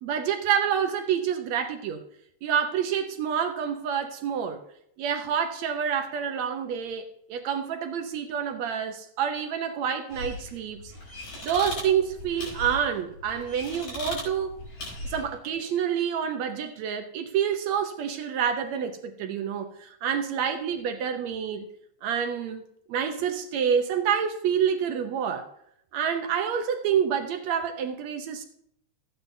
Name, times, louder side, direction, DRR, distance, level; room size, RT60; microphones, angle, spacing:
voice 1, 0.0-2.0 2.4-4.6 5.0-10.9 11.4-14.5 15.0-21.7 22.0-22.6 22.9-25.5 25.9-28.5, right 8 dB, 70° right, 5 dB, 1.7 m, -28 dB
sound 1, 10.1-15.4, left 1 dB, 60° left, 5.7 m, -38 dB
14.5 x 9.4 x 2.7 m, 0.72 s
omnidirectional pair, 3.9 m